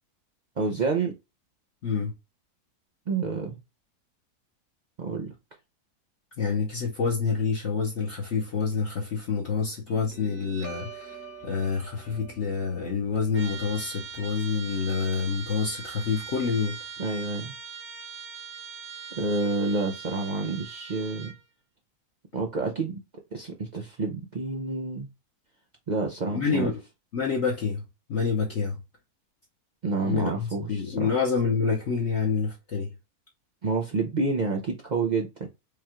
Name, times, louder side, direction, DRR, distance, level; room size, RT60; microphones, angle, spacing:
voice 1, 0.6-1.1 3.1-3.6 5.0-5.3 17.0-17.5 19.1-21.3 22.3-23.0 23.3-25.1 25.9-26.7 29.8-31.1 33.6-35.5, right 3 dB, 75° right, 0.4 m, -28 dB
voice 2, 6.4-16.8 26.3-26.7 27.1-27.8 28.1-28.8 30.0-32.9, left 5 dB, 50° left, 1.1 m, -27 dB
Guitar, 9.9-16.9, right 4 dB, 15° right, 0.7 m, -47 dB
Trumpet, 13.3-21.4, right 6 dB, 45° right, 1.0 m, -41 dB
4.9 x 2.4 x 2.9 m
omnidirectional pair, 1.6 m